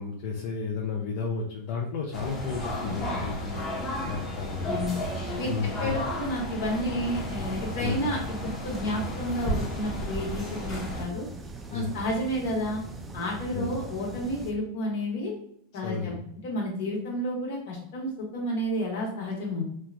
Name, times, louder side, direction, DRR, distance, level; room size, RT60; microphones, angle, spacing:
voice 1, 0.0-4.8 5.5-5.9 7.8-8.1 11.7-12.0 13.5-13.8 15.8-16.1, left 5 dB, 60° left, -1 dB, 0.4 m, -33 dB
sound 1, 2.1-11.0, equal, 15° left, 0.7 m, -33 dB
voice 2, 4.6-5.0 5.4-11.2 11.7-12.8 13.1-15.3 15.7-16.2 16.4-19.6, equal, 75° left, -1 dB, 1.1 m, -31 dB
sound 2, 7.1-14.5, right 2 dB, 15° right, 0.4 m, -42 dB
2.9 x 2.2 x 2.4 m, 0.70 s
supercardioid pair, 130°, 0 cm